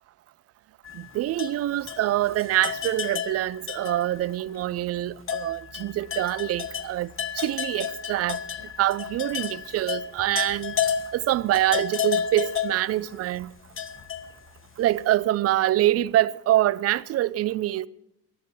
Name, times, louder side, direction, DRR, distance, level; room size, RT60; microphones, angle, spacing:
sound 1, 0.8-4.3 4.6-4.7 5.2-14.8, left 8 dB, 25° left, 1.1 m, -32 dB
voice 1, 0.9-8.4 8.8-10.7 11.1-13.5 14.8-17.9, right 14 dB, 30° right, 0.5 m, -25 dB
23.0 x 8.3 x 6.1 m
figure-of-eight pair, 55°, 47 cm